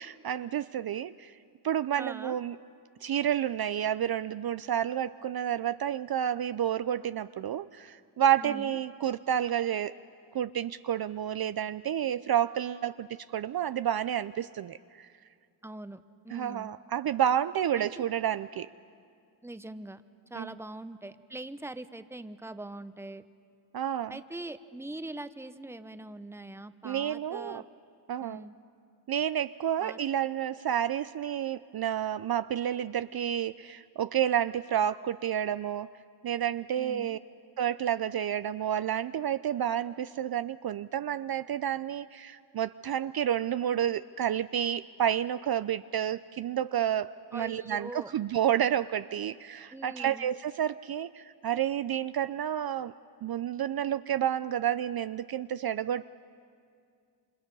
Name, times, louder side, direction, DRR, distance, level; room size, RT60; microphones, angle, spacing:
voice 1, 0.0-1.3 1.6-2.5 3.0-9.9 10.3-13.1 13.3-15.1 16.3-18.7 20.3-20.5 23.7-24.1 26.8-27.6 28.1-28.4 29.1-35.9 36.2-37.2 37.6-52.9 53.2-56.0, right 10 dB, 50° right, 14 dB, 0.5 m, -30 dB
voice 2, 2.0-2.4 8.4-8.8 15.6-16.7 17.7-17.9 19.4-20.0 20.3-23.2 24.1-27.6 28.2-28.5 29.8-30.0 36.8-37.2 47.3-48.1 49.7-50.3, right 2 dB, 5° right, 11 dB, 0.9 m, -42 dB
28.5 x 26.0 x 5.5 m, 2.3 s
cardioid pair, 65°, 47 cm